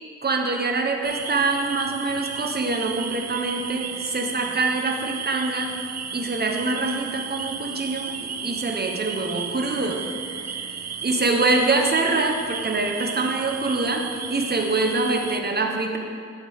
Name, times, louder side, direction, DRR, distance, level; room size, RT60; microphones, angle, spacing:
voice 1, 0.2-5.7 6.1-10.0 11.0-16.0, right 3 dB, 35° right, 2 dB, 0.9 m, -24 dB
sound 1, 1.0-15.4, right 7 dB, 60° right, 0.5 m, -34 dB
9.5 x 8.0 x 3.5 m, 2.4 s
wide cardioid pair, 120°, 30 cm